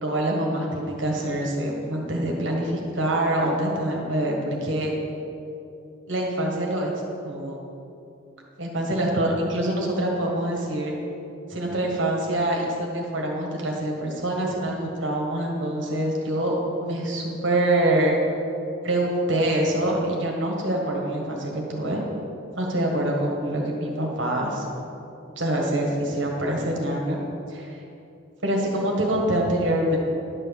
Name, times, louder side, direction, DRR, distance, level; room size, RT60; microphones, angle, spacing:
voice 1, 0.0-4.9 6.1-6.9 7.2-7.6 8.6-10.9 11.5-18.2 18.8-22.0 22.5-24.6 25.4-27.2 27.5-27.8 28.4-30.0, right 1 dB, 65° right, 0 dB, 1.6 m, -25 dB
11.0 x 4.4 x 7.1 m, 2.8 s
head